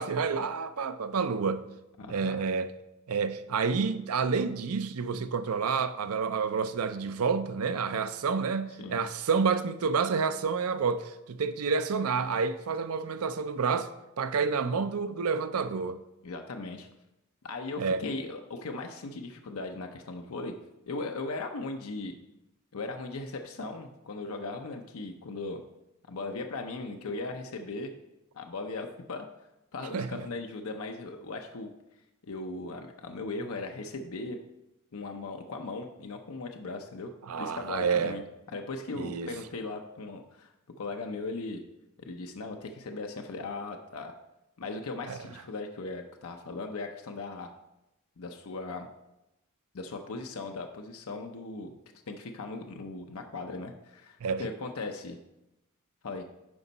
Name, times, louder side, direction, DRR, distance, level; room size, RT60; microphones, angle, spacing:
voice 1, 0.0-1.6 2.1-2.7 3.1-13.9 14.2-16.0 17.8-18.0 29.9-30.3 37.3-38.2 38.9-39.3 45.1-45.2 54.2-54.4, right 5 dB, 80° right, 0.5 m, -29 dB
voice 2, 2.0-2.4 8.8-9.0 16.2-16.9 17.4-20.6 20.9-22.1 22.7-25.6 26.1-27.9 28.3-29.3 29.7-31.7 32.2-34.4 34.9-37.1 37.4-38.2 38.5-40.5 40.8-41.6 42.0-44.1 44.6-47.5 48.2-48.9 49.7-51.7 52.1-55.2 56.0-56.2, left 3 dB, 70° left, 0.6 m, -38 dB
9.6 x 5.3 x 4.0 m
head